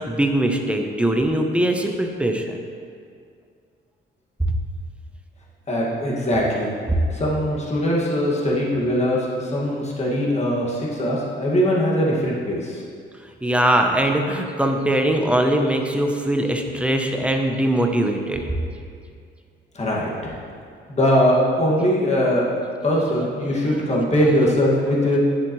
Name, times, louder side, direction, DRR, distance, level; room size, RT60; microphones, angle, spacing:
voice 1, 0.0-2.6 4.4-4.5 6.9-7.0 13.4-18.5 23.4-23.5, right 1 dB, 5° right, 3 dB, 0.8 m, -21 dB
voice 2, 5.7-6.7 7.1-12.8 19.7-20.3 20.9-22.5 22.8-25.2, equal, 35° left, -5 dB, 2.1 m, -21 dB
10.0 x 7.3 x 3.2 m, 2.2 s
cardioid pair, 90°, 20 cm